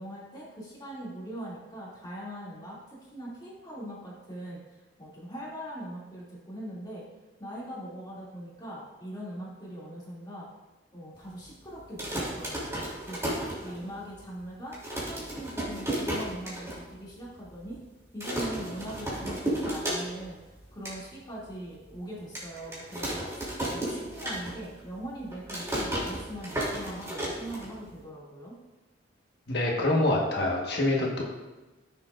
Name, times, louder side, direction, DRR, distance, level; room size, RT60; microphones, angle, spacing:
voice 1, 0.0-7.0 7.4-10.5 10.9-14.8 15.1-17.8 18.1-20.4 20.7-28.6, right 1 dB, 20° left, -7 dB, 2.4 m, -41 dB
sound 1, 11.8-14.1 14.4-14.5 14.7-16.8 17.1-17.2 17.4-17.8 18.2-20.3 20.6-21.0 21.5-21.6 22.3-24.8 25.1-28.0, right 1 dB, 15° right, 2.8 m, -33 dB
voice 2, 29.5-31.2, left 1 dB, 60° left, -1 dB, 1.4 m, -25 dB
15.0 x 6.8 x 2.5 m, 1.1 s
head